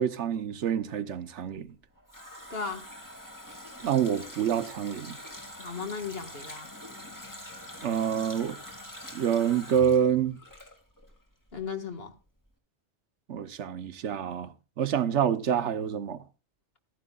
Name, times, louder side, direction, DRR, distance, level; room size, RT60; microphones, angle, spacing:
voice 1, 0.0-1.7 3.8-5.2 7.8-8.5 9.1-10.4 13.3-16.2, right 8 dB, 85° right, 1.2 m, -27 dB
Water tap faucet, 1.6-11.2 11.5-11.6, left 1 dB, 15° left, 2.3 m, -45 dB
voice 2, 2.5-2.8 5.6-6.7 11.5-12.1, left 5 dB, 60° left, 2.0 m, -36 dB
15.0 x 14.0 x 2.3 m
omnidirectional pair, 1.2 m